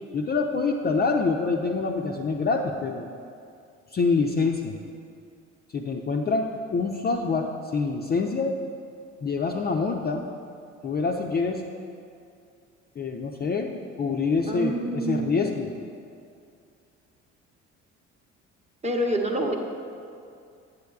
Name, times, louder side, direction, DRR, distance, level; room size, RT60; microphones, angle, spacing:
voice 1, 0.1-3.1 3.9-4.8 5.7-8.5 9.2-10.3 10.8-11.7 13.0-15.7, left 4 dB, 25° left, 2 dB, 0.5 m, -26 dB
voice 2, 14.5-15.4 18.8-19.6, right 1 dB, 20° right, 2 dB, 0.8 m, -27 dB
8.2 x 7.8 x 2.3 m, 2.4 s
hypercardioid pair, 55°, 36 cm